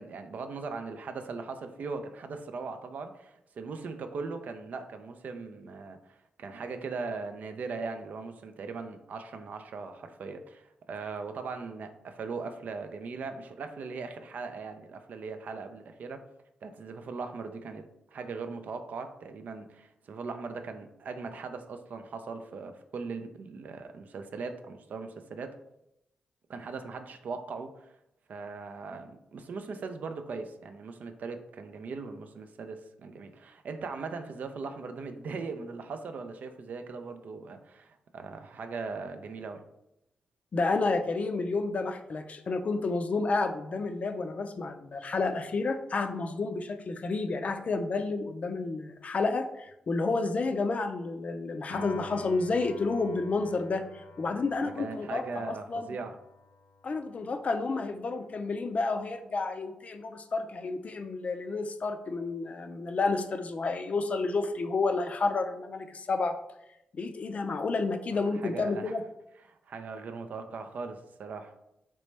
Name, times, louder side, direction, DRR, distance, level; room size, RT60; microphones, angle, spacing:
voice 1, 0.0-16.3 16.6-17.8 18.1-25.6 26.5-27.9 28.3-39.6 54.6-56.2 68.1-69.0 69.5-71.5, right 4 dB, 65° right, 7 dB, 0.4 m, -39 dB
voice 2, 40.5-56.0 56.8-66.4 66.9-69.0, left 3 dB, 50° left, 7 dB, 0.4 m, -30 dB
Piano, 51.7-58.1, left 2 dB, 85° left, 0.8 m, -48 dB
3.2 x 3.0 x 3.2 m, 0.83 s
supercardioid pair, 50°, 3 cm